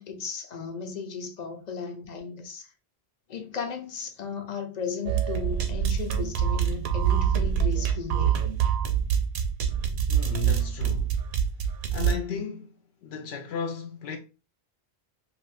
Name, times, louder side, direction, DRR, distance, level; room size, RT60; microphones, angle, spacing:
voice 1, 0.0-2.7 3.3-8.5, left 6 dB, 50° left, 0.6 m, -35 dB
sound 1, 5.0-12.1, right 8 dB, 75° right, 0.8 m, -25 dB
voice 2, 10.1-11.2 11.9-12.8 13.0-14.2, left 5 dB, 85° left, 0.8 m, -34 dB
2.6 x 2.6 x 3.2 m
omnidirectional pair, 1.0 m